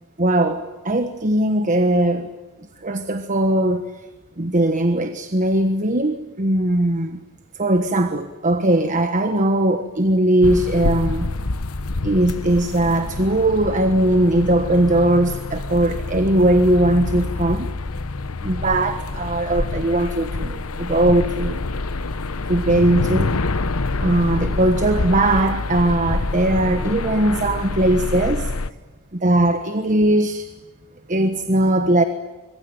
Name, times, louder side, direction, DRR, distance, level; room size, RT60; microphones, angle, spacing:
voice 1, 0.2-2.3 2.8-3.9 4.4-7.2 7.6-11.3 12.0-17.7 18.4-21.6 22.5-23.3 24.0-28.5 29.1-30.5 31.1-32.0, right 1 dB, 35° right, 8 dB, 1.3 m, -19 dB
sound 1, 10.4-28.7, left 3 dB, 85° left, 1.0 m, -26 dB
26.0 x 23.0 x 9.1 m, 1.2 s
head